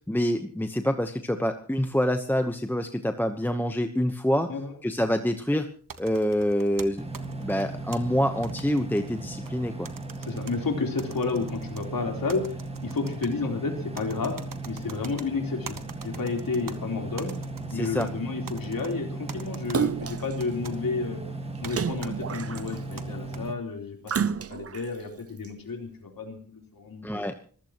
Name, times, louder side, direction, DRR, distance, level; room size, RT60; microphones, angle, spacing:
voice 1, 0.1-4.5 4.8-5.7 6.0-7.1 7.4-9.9 17.7-18.1 27.0-27.5, equal, 5° left, 6 dB, 1.0 m, -26 dB
sound 1, 5.9-8.0 8.4-9.6 9.9-10.6 11.0-11.9 12.3-13.3 14.0-15.3 15.7-16.8 17.2-18.1 18.5-18.9 19.3-19.8 20.4-20.8 21.6-21.7 22.0-22.1 22.6-23.4, right 6 dB, 75° right, 1.5 m, -43 dB
sound 2, 7.0-23.5, right 2 dB, 15° right, 1.9 m, -37 dB
voice 2, 10.2-14.4 14.6-17.3 17.7-27.0, left 4 dB, 90° left, 2 dB, 4.1 m, -31 dB
Splash splatter, 19.7-20.3 21.7-22.9 24.1-24.9 25.4-25.5, right 7 dB, 45° right, 0.6 m, -29 dB
25.5 x 15.5 x 3.1 m, 0.44 s
wide cardioid pair, 105°, 33 cm